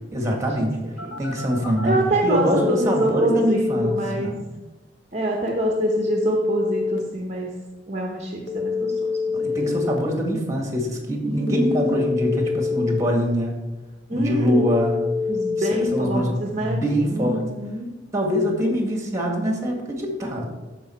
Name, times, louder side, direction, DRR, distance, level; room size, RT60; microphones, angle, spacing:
voice 1, 0.1-0.8 1.2-2.0 2.2-4.4 9.3-13.6 14.1-15.0 15.6-17.4 18.1-20.4, equal, 15° right, 1 dB, 1.9 m, -24 dB
Telephone, 1.0-2.0 2.5-4.0 5.5-7.0 8.5-10.0 11.5-13.0 14.5-16.0, left 5 dB, 75° left, 1.3 m, -26 dB
voice 2, 1.8-4.3 5.1-7.5 7.9-8.9 9.4-9.8 11.2-12.0 14.1-14.6 15.3-16.8 17.1-17.9, right 2 dB, 35° right, 0 dB, 1.0 m, -26 dB
13.5 x 5.2 x 4.5 m, 1.2 s
head